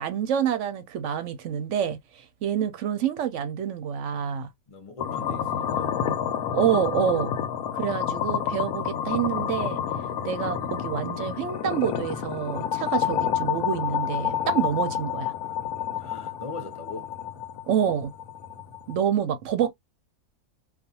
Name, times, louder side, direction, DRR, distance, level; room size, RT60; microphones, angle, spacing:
voice 1, 0.0-4.5 6.5-7.3 7.7-9.8 10.2-15.3 17.7-18.1 18.9-19.7, right 9 dB, 65° right, 0.8 m, -27 dB
voice 2, 4.7-6.0 16.0-17.1, left 3 dB, 35° left, 0.5 m, -41 dB
sound 1, 5.0-19.0, left 9 dB, 75° left, 1.0 m, -29 dB
2.4 x 2.3 x 2.7 m
omnidirectional pair, 1.6 m